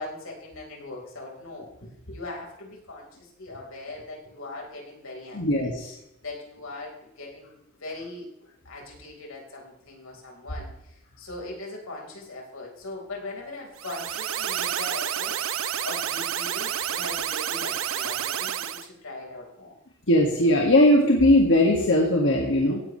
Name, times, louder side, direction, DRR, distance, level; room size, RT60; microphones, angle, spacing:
voice 1, 0.0-5.7 6.2-8.3 8.6-15.3 15.8-19.7, left 2 dB, 90° left, -1 dB, 4.3 m, -40 dB
voice 2, 5.3-5.9 20.1-22.8, left 1 dB, 60° left, -1 dB, 1.8 m, -19 dB
sound 1, 13.8-18.9, right 9 dB, 80° right, 0.7 m, -29 dB
16.5 x 10.0 x 3.2 m, 0.84 s
head